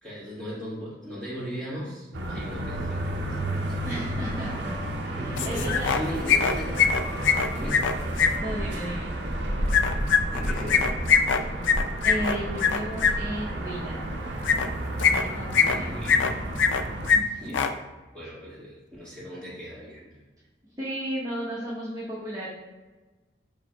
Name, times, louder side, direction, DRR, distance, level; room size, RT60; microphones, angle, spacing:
voice 1, 0.0-4.0 5.1-6.8 7.2-7.9 10.3-11.1 15.6-16.3 17.4-17.8 18.1-20.2, equal, 5° left, -8 dB, 1.5 m, -38 dB
sound 1, 2.1-17.1, right 1 dB, 65° right, 0.6 m, -31 dB
voice 2, 3.8-6.2 8.2-9.1 11.4-11.7 12.0-14.1 15.0-16.0 17.1-17.5 20.8-22.5, right 1 dB, 20° right, -10 dB, 0.8 m, -35 dB
sound 2, 5.4-6.0 6.3-8.3 9.7-13.1 14.4-14.7 15.0-15.8 16.1-16.8 17.1-17.2 17.5-17.7, left 6 dB, 75° left, 0.3 m, -22 dB
5.2 x 4.6 x 2.2 m, 1.2 s
head